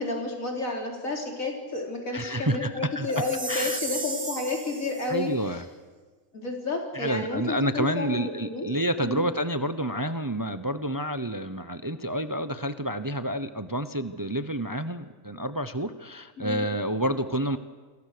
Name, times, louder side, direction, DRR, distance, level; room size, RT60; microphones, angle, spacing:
voice 1, 0.0-5.3 6.3-8.7 9.0-9.2 16.4-16.7, left 2 dB, 85° left, 1 dB, 4.5 m, -31 dB
voice 2, 2.1-3.1 3.5-3.8 5.1-5.6 6.9-17.6, right 1 dB, 20° right, 10 dB, 0.7 m, -29 dB
Chime, 3.1-5.1, right 3 dB, 55° right, 2.9 m, -35 dB
29.0 x 22.0 x 6.8 m, 1.4 s
omnidirectional pair, 1.4 m